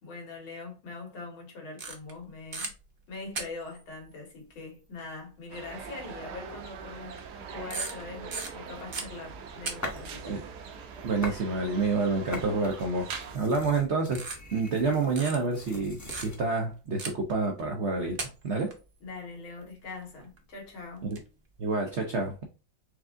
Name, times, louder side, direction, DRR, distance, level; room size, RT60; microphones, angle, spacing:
voice 1, 0.0-2.7 3.1-7.2 7.5-10.4 19.0-21.1, left 3 dB, 85° left, 2.3 m, -42 dB
sound 1, 1.8-2.2 2.5-2.7 3.3-3.8 5.0-5.1 5.6-5.7 7.0-7.4 7.7-9.7 10.0-10.1 13.1-13.4 14.1-14.8 15.2-15.4 16.1-16.5 17.0-17.3 18.0-18.8 20.4-20.5 20.9-21.2, right 4 dB, 45° right, 0.7 m, -37 dB
sound 2, 5.5-13.4, right 5 dB, 65° right, 1.1 m, -42 dB
sound 3, 8.8-10.1 10.6-11.4 11.8-16.4, left 1 dB, 20° left, 0.4 m, -42 dB
voice 2, 11.0-14.2 14.5-18.7 21.1-21.2 21.6-22.5, right 3 dB, 85° right, 0.6 m, -28 dB
4.6 x 3.6 x 2.5 m
omnidirectional pair, 2.2 m